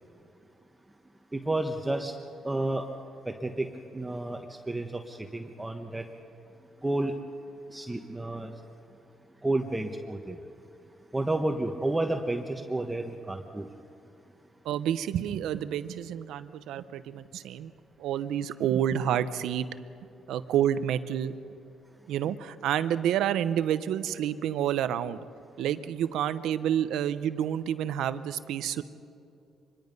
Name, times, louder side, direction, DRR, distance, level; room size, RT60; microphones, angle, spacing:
voice 1, 1.3-2.1 2.4-2.9 3.3-3.7 3.9-4.4 4.7-6.0 6.8-7.1 7.7-8.5 9.4-10.4 11.1-13.7, right 2 dB, 15° right, 4 dB, 1.2 m, -30 dB
voice 2, 14.6-17.7 18.0-19.7 20.3-21.4 22.1-25.2 25.6-28.8, right 10 dB, 85° right, 13 dB, 0.8 m, -29 dB
24.5 x 21.5 x 5.4 m, 2.6 s
cardioid pair, 90°, 0 cm